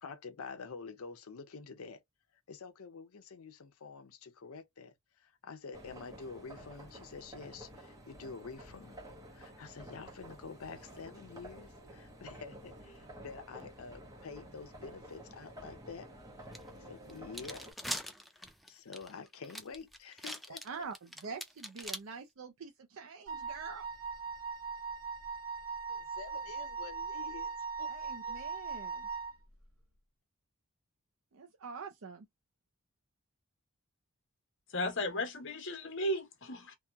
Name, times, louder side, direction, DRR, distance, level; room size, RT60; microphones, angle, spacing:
voice 1, 0.0-2.0 2.5-9.0 9.3-16.1 16.7-18.0 18.4-20.6 25.9-28.4, left 5 dB, 80° left, 0.6 m, -48 dB
sound 1, 5.7-17.7, right 1 dB, 15° right, 0.9 m, -51 dB
sound 2, 16.5-16.6 17.1-22.0, equal, ahead, 0.3 m, -41 dB
voice 2, 20.6-23.9 27.9-29.1 31.3-32.3, right 5 dB, 65° right, 0.5 m, -45 dB
Wind instrument woodwind instrument, 23.3-29.4, right 5 dB, 85° right, 1.1 m, -40 dB
voice 3, 34.7-36.7, left 1 dB, 60° left, 1.0 m, -35 dB
2.9 x 2.2 x 2.3 m
head